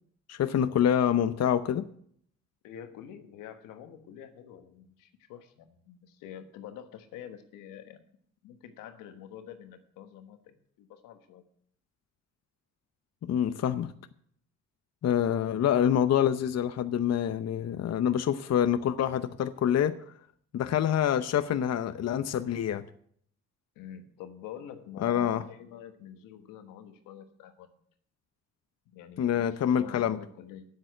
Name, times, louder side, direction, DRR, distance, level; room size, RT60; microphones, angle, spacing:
voice 1, 0.3-1.9 13.2-13.9 15.0-19.9 20.5-22.8 25.0-25.4 29.2-30.2, left 9 dB, 55° left, 11 dB, 0.8 m, -26 dB
voice 2, 2.6-8.0 8.4-11.4 23.7-27.8 28.9-30.7, left 9 dB, 90° left, 8 dB, 1.3 m, -47 dB
9.0 x 7.8 x 9.0 m, 0.63 s
supercardioid pair, 65°, 31 cm